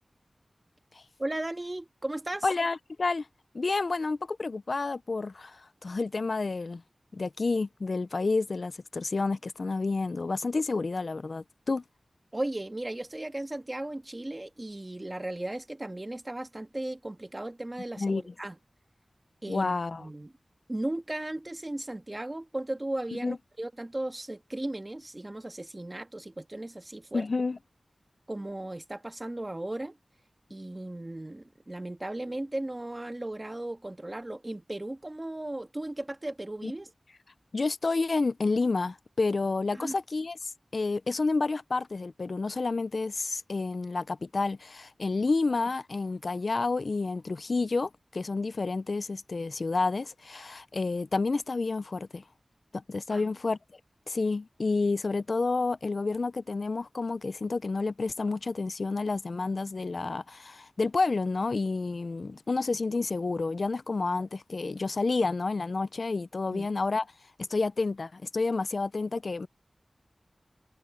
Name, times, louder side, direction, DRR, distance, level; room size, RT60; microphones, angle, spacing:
voice 1, 1.2-2.5 12.3-18.6 19.4-20.3 20.7-27.3 28.3-30.0 30.5-36.9 39.7-40.0 53.1-53.3 66.5-66.7, right 1 dB, 30° right, 1.8 m, -36 dB
voice 2, 2.4-3.3 3.5-6.8 7.1-11.8 18.0-18.2 19.5-20.0 23.2-23.4 27.1-27.6 36.6-36.7 37.5-52.2 52.7-53.6 54.1-67.0 67.5-69.5, left 3 dB, 65° left, 0.4 m, -30 dB
wide cardioid pair, 55°, 0 cm